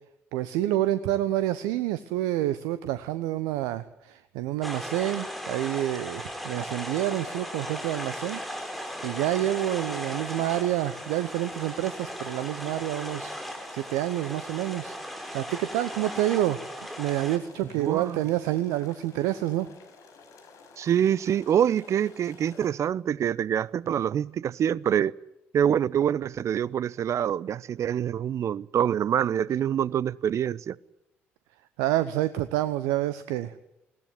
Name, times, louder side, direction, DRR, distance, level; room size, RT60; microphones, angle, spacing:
voice 1, 0.3-8.4 9.0-13.3 13.7-16.6 17.0-19.7 31.8-33.5, right 14 dB, 75° right, 1.0 m, -28 dB
sound 1, 4.6-17.4, equal, ahead, 5.2 m, -37 dB
sound 2, 7.1-22.7, left 4 dB, 60° left, 5.4 m, -52 dB
voice 2, 17.8-18.2 20.8-25.1 25.5-30.8, right 9 dB, 50° right, 0.8 m, -25 dB
20.5 x 18.0 x 9.7 m
hypercardioid pair, 50°, 6 cm